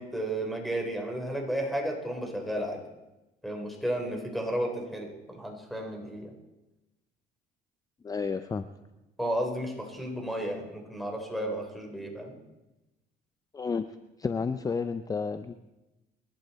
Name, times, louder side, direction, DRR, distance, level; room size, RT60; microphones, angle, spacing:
voice 1, 0.0-2.8 3.4-6.3 9.2-12.4, right 1 dB, ahead, 1 dB, 3.8 m, -33 dB
voice 2, 8.0-8.7 13.5-13.9 14.2-15.5, left 5 dB, 20° left, 11 dB, 0.6 m, -31 dB
26.5 x 11.5 x 4.2 m, 1.0 s
cardioid pair, 110°, 17 cm